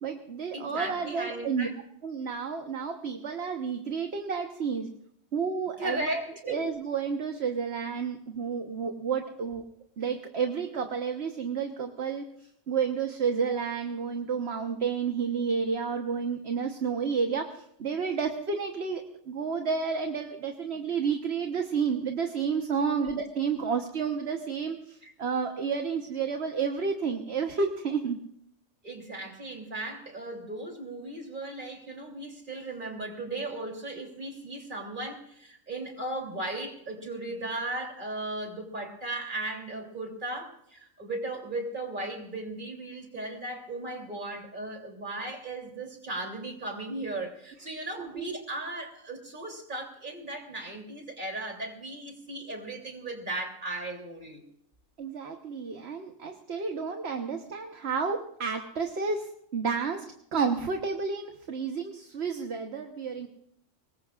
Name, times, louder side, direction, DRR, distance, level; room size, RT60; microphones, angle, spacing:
voice 1, 0.0-1.7 2.0-4.9 5.3-9.6 10.0-28.2 48.0-48.2 55.0-60.0 60.3-63.3, right 5 dB, 60° right, 4 dB, 1.4 m, -31 dB
voice 2, 0.5-1.7 5.8-6.6 23.0-23.1 25.0-25.1 28.8-54.4, right 2 dB, 40° right, 1 dB, 3.3 m, -36 dB
24.5 x 20.5 x 2.5 m, 0.71 s
omnidirectional pair, 1.3 m